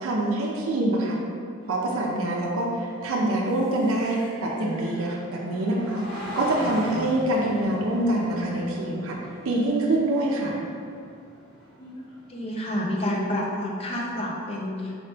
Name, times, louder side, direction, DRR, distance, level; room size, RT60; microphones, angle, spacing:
voice 1, 0.0-1.2 1.7-9.2 9.4-10.6, right 1 dB, 80° right, -2 dB, 0.5 m, -25 dB
sound 1, 1.6-12.3, equal, 60° left, 1.2 m, -41 dB
voice 2, 11.8-14.9, left 1 dB, 25° left, -2 dB, 0.5 m, -29 dB
4.2 x 2.8 x 3.3 m, 2.3 s
head